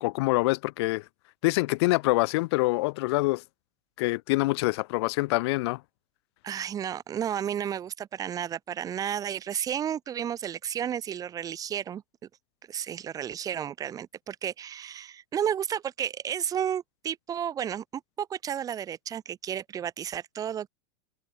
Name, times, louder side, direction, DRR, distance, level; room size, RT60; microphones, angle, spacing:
voice 1, 0.0-1.0 1.4-3.4 4.0-5.8, left 22 dB, 60° left, 2.1 m, -25 dB
voice 2, 6.4-12.0 12.7-20.7, right 9 dB, 25° right, 4.7 m, -32 dB
supercardioid pair, 155°, 16 cm